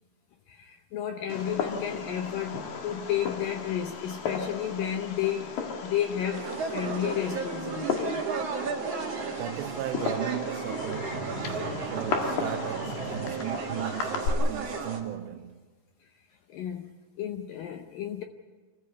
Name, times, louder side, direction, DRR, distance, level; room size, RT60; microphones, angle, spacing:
voice 1, 0.5-8.2 16.0-16.1 16.5-16.9 17.2-18.2, left 10 dB, 75° left, 2.1 m, -32 dB
Fireworks, 1.3-14.3, left 5 dB, 60° left, 3.3 m, -36 dB
sound 1, 6.3-15.0, right 5 dB, 40° right, 2.8 m, -34 dB
voice 2, 9.3-11.6 11.9-15.6, right 12 dB, 80° right, 2.9 m, -36 dB
26.5 x 15.0 x 8.4 m
omnidirectional pair, 5.1 m